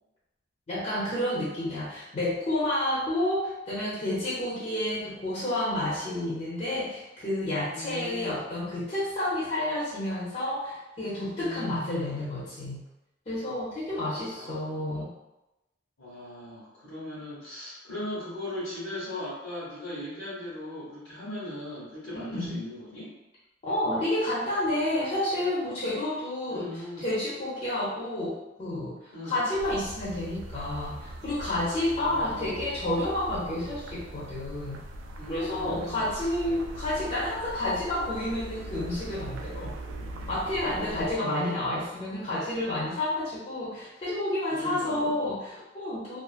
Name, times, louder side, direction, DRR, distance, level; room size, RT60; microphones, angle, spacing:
voice 1, 0.7-12.8 13.3-15.1 22.1-22.6 23.6-34.8 35.3-39.7 40.3-46.2, left 1 dB, 35° left, -8 dB, 0.5 m, -30 dB
voice 2, 7.7-8.4 11.3-12.2 13.9-14.8 16.0-23.1 26.5-27.1 29.1-29.5 31.9-32.6 35.2-36.1 40.5-41.4 44.5-45.1, left 1 dB, 90° left, -11 dB, 0.9 m, -39 dB
sound 1, 29.6-41.2, right 1 dB, 90° right, 0.3 m, -41 dB
2.4 x 2.4 x 2.4 m, 0.97 s
head